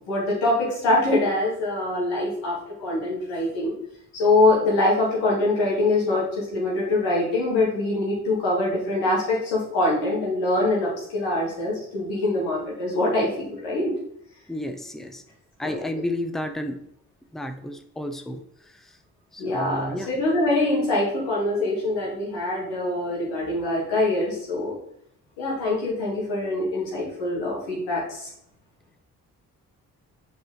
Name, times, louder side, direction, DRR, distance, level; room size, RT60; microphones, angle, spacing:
voice 1, 0.1-3.7 4.1-13.9 15.6-15.9 19.4-24.8 25.4-28.3, left 2 dB, 90° left, -5 dB, 2.3 m, -24 dB
voice 2, 14.5-15.2 15.6-16.8 17.3-18.9 19.3-20.1, left 1 dB, ahead, 6 dB, 0.9 m, -32 dB
6.9 x 4.2 x 3.9 m, 0.69 s
hypercardioid pair, 40°, 41 cm